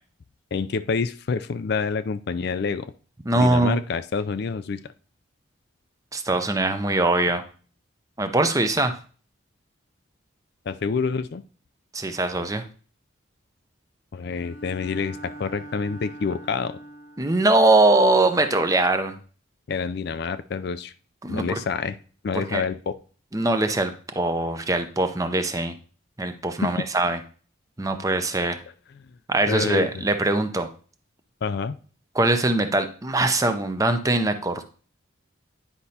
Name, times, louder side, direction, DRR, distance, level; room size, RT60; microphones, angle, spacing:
voice 1, 0.5-2.9 3.3-4.8 10.7-11.4 14.1-16.8 19.7-20.9 21.3-22.0 22.2-22.9 26.6-26.7 29.5-30.0 31.4-31.8, left 5 dB, 55° left, 12 dB, 0.4 m, -27 dB
voice 2, 3.2-3.8 6.1-7.4 8.2-8.9 11.9-12.6 17.2-19.2 21.2-21.6 22.3-22.6 23.3-25.8 26.2-27.2 27.8-28.6 29.3-30.7 32.1-34.6, right 2 dB, 15° right, 8 dB, 0.5 m, -22 dB
Bowed string instrument, 14.3-17.4, right 1 dB, 75° right, 1.2 m, -42 dB
10.0 x 5.2 x 2.8 m, 0.40 s
head